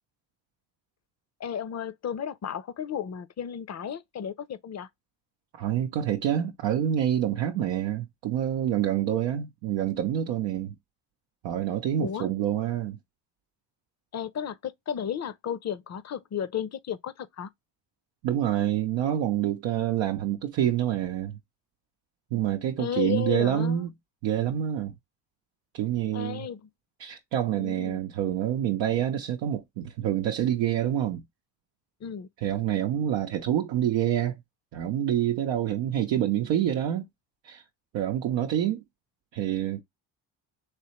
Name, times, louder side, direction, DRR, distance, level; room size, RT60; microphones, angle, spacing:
voice 1, 1.4-4.9 12.0-12.3 14.1-17.5 22.8-23.9 26.1-26.6 27.5-28.0 32.0-32.3, left 8 dB, 40° left, 0.6 m, -33 dB
voice 2, 5.5-10.8 11.4-13.0 18.2-21.4 22.3-23.9 24.2-24.9 25.7-26.5 27.0-31.2 32.4-34.4 34.7-37.1 37.4-37.6 37.9-38.8 39.3-39.8, right 11 dB, 85° right, 0.6 m, -27 dB
3.3 x 3.2 x 2.9 m
supercardioid pair, 65°, 43 cm